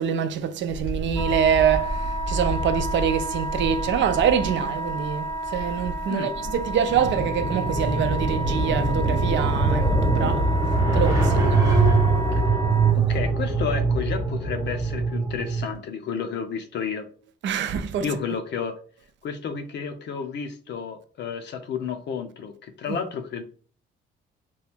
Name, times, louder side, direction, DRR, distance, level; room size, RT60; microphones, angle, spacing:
voice 1, 0.0-10.5 10.9-11.6 17.4-18.1, right 8 dB, 65° right, 0.5 m, -25 dB
Wind, 0.7-8.8, right 1 dB, 90° left, 1.0 m, -33 dB
Wind instrument woodwind instrument, 1.2-12.9, right 1 dB, 10° left, 0.7 m, -32 dB
sound 1, 6.9-15.7, right 3 dB, 15° right, 0.9 m, -22 dB
voice 2, 12.9-17.1 18.0-18.8 19.2-23.4, left 6 dB, 60° left, 0.6 m, -31 dB
3.0 x 2.3 x 3.4 m
cardioid pair, 90°, 20 cm